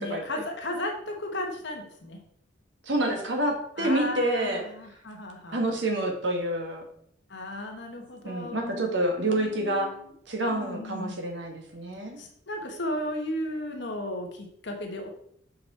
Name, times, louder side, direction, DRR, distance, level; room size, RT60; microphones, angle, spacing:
voice 1, 0.0-2.2 3.8-5.8 7.3-8.9 9.2-10.1 10.5-11.2 12.2-15.1, left 1 dB, 60° left, 3 dB, 1.2 m, -35 dB
voice 2, 2.8-4.6 5.5-6.8 8.2-9.9 10.3-12.2, right 1 dB, 65° right, 2 dB, 1.6 m, -28 dB
6.0 x 5.2 x 4.2 m, 0.68 s
head